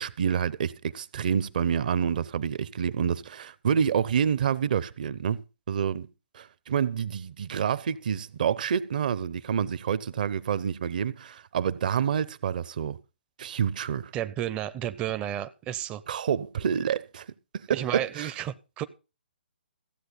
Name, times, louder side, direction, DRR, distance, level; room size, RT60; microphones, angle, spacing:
voice 1, 0.0-5.4 5.7-6.1 6.3-13.0 13.4-14.1 16.1-17.2 17.5-18.3, right 8 dB, 50° right, 0.8 m, -28 dB
voice 2, 14.1-16.0 17.7-18.8, right 11 dB, 20° right, 0.6 m, -32 dB
15.5 x 8.0 x 5.5 m
figure-of-eight pair, 130°, 6 cm